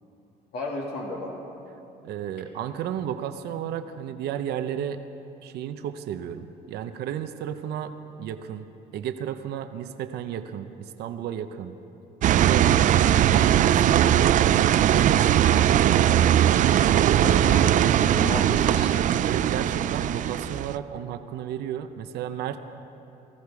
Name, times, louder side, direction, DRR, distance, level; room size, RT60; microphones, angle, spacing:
voice 1, 0.5-1.4 17.2-19.0, left 1 dB, 75° left, -2 dB, 2.3 m, -33 dB
voice 2, 2.0-5.0 5.4-8.7 8.9-11.7 12.3-12.7 13.1-14.4 15.0-15.4 16.4-17.6 19.2-22.6, right 10 dB, 75° right, 8 dB, 0.8 m, -33 dB
sound 1, 12.2-20.8, right 11 dB, 50° right, 0.4 m, -20 dB
19.5 x 14.5 x 4.8 m, 2.8 s
cardioid pair, 110°, 17 cm